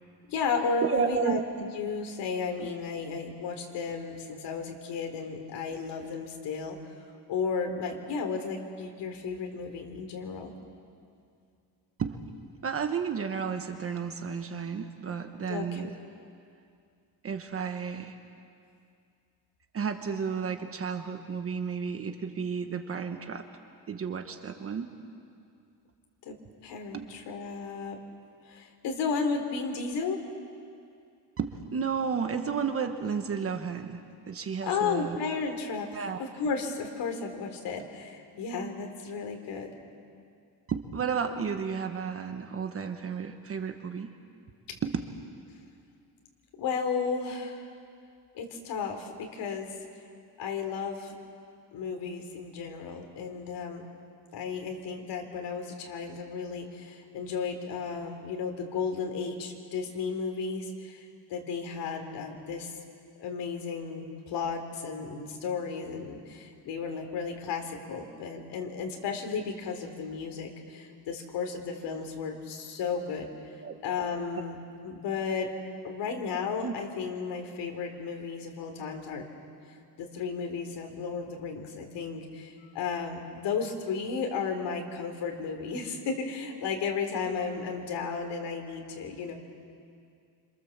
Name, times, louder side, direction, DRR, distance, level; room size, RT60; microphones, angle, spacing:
voice 1, 0.3-6.9 7.3-10.5 15.5-15.9 26.2-26.4 26.6-28.0 28.4-30.2 34.6-39.7 46.6-47.7 48.3-49.7 50.4-51.1 51.7-53.9 54.3-61.0 61.3-62.8 63.2-73.3 73.8-74.6 74.8-75.5 75.8-79.3 80.0-89.3, left 5 dB, 80° left, 4 dB, 3.8 m, -34 dB
voice 2, 0.8-1.4 2.6-2.7 12.0-12.2 12.6-16.0 17.2-18.2 19.7-23.5 23.9-24.9 26.9-27.1 31.4-35.2 35.9-36.2 40.7-44.1 44.8-45.0 73.6-73.7 76.6-76.7, right 6 dB, 35° right, 6 dB, 1.2 m, -32 dB
27.5 x 27.0 x 7.3 m, 2.4 s
cardioid pair, 165°, 41 cm